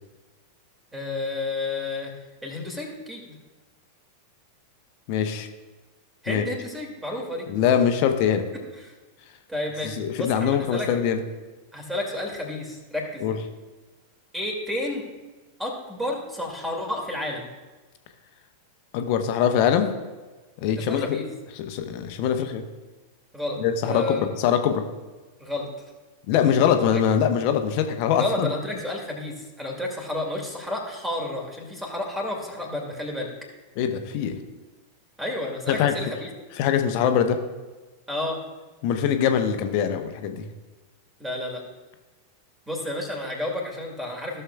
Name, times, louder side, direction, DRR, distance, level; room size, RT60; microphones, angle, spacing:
voice 1, 0.9-2.1 2.4-3.4 6.2-7.5 8.5-8.9 9.5-10.9 11.7-13.3 14.3-15.0 15.6-17.5 20.7-21.3 23.3-24.3 25.4-25.7 26.7-27.0 28.2-33.3 35.2-36.3 38.1-38.4 41.2-41.6 42.7-44.4, left 1 dB, 10° right, 0 dB, 2.2 m, -31 dB
voice 2, 5.1-5.5 6.3-6.4 7.5-8.5 10.0-11.2 13.2-13.4 18.9-19.9 20.6-21.2 21.6-22.6 23.6-24.8 26.3-28.5 33.8-34.3 35.7-35.9 36.6-37.4 38.8-40.5, left 8 dB, 45° left, 7 dB, 0.8 m, -23 dB
15.5 x 6.6 x 2.3 m, 1.2 s
figure-of-eight pair, 90°, 0 cm